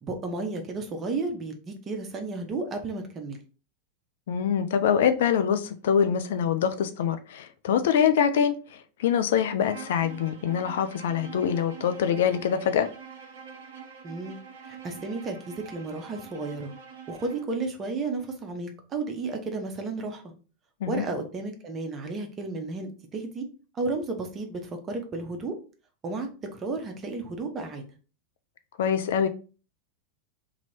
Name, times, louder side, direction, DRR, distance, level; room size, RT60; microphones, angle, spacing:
voice 1, 0.0-3.4 14.0-14.4 14.6-16.7 17.1-20.3 20.9-23.5 23.7-25.5 26.0-27.8, right 3 dB, 25° right, 0.8 m, -33 dB
voice 2, 4.3-12.9 20.8-21.0 28.8-29.3, left 8 dB, 55° left, 0.3 m, -24 dB
Bowed string instrument, 9.6-17.5, right 6 dB, 60° right, 0.6 m, -45 dB
2.9 x 2.7 x 4.2 m
figure-of-eight pair, 90°, 0 cm